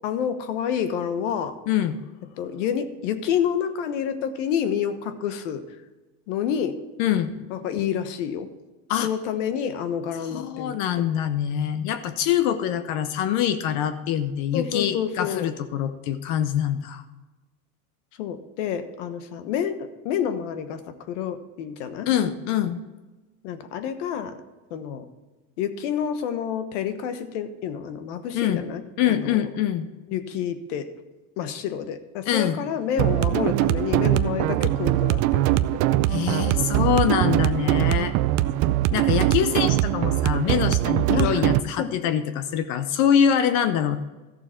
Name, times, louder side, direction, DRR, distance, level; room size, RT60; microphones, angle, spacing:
voice 1, 0.0-1.5 2.4-5.6 6.3-6.8 7.5-8.5 9.0-10.8 14.5-15.5 18.2-22.1 23.4-24.4 24.7-25.0 25.6-29.4 30.1-30.9 31.4-35.6 41.1-41.4 41.8-41.9, left 8 dB, 70° left, 10 dB, 1.2 m, -28 dB
voice 2, 1.7-2.0 7.0-7.4 8.9-9.1 10.2-17.0 22.1-22.8 28.3-28.6 29.0-29.9 32.3-32.6 36.1-38.1 38.9-44.0, left 9 dB, 50° left, 11 dB, 0.8 m, -24 dB
sound 1, 33.0-41.6, right 15 dB, 45° right, 0.5 m, -22 dB
14.0 x 7.0 x 4.5 m, 1.2 s
supercardioid pair, 140°, 37 cm